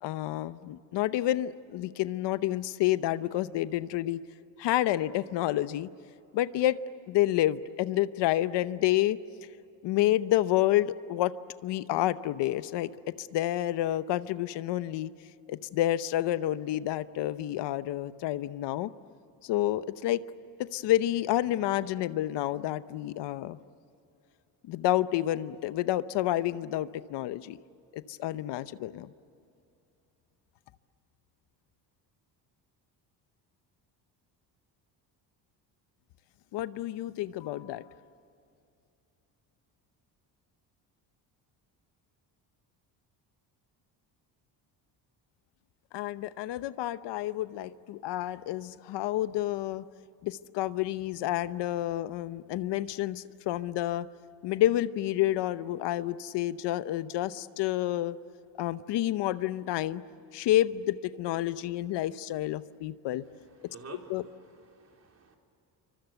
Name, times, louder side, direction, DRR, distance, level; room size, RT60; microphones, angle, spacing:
voice 1, 0.0-4.2 4.6-5.9 6.3-6.8 7.1-9.2 9.8-11.3 11.6-12.9 13.2-15.1 15.5-18.9 19.4-20.2 20.6-23.6 24.7-27.6 27.9-29.1 36.5-37.8 45.9-49.8 50.2-54.1 54.4-58.2 58.6-60.0 60.3-63.2 64.1-64.2, left 14 dB, 80° left, 14 dB, 0.9 m, -29 dB
voice 2, 63.4-65.4, right 4 dB, 40° right, 2 dB, 4.4 m, -50 dB
27.5 x 25.0 x 8.0 m, 2.7 s
cardioid pair, 125°, 41 cm